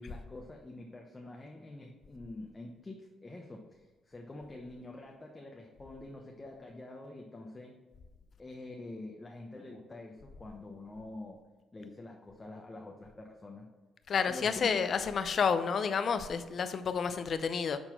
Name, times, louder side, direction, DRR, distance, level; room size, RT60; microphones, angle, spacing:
voice 1, 0.0-7.8 8.4-11.4 11.7-13.7 14.3-14.7, left 2 dB, 20° left, 0 dB, 0.9 m, -46 dB
voice 2, 14.1-17.8, left 6 dB, 50° left, 10 dB, 0.6 m, -30 dB
6.9 x 4.0 x 6.0 m, 1.2 s
cardioid pair, 90°, 0 cm